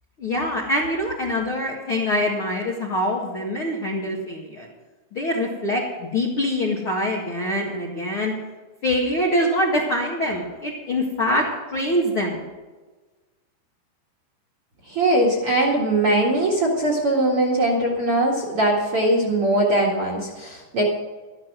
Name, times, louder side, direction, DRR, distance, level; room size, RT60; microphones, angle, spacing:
voice 1, 0.2-4.7 5.1-8.3 8.8-12.4, left 1 dB, 50° left, -3 dB, 1.6 m, -24 dB
voice 2, 14.9-20.8, right 1 dB, 45° right, -1 dB, 2.0 m, -21 dB
13.0 x 12.0 x 6.2 m, 1.3 s
omnidirectional pair, 5.1 m